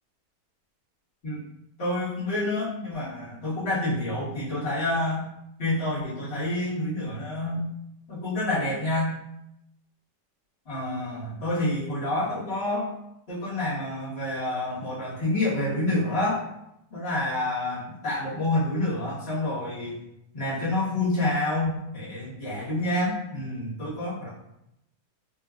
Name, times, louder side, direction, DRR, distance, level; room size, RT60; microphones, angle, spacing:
voice 1, 1.8-5.2 5.6-7.7 8.1-9.1 10.6-12.9 13.3-16.4 16.9-20.0 20.3-24.3, left 1 dB, 40° left, -11 dB, 1.6 m, -28 dB
3.4 x 2.8 x 2.4 m, 0.84 s
omnidirectional pair, 1.8 m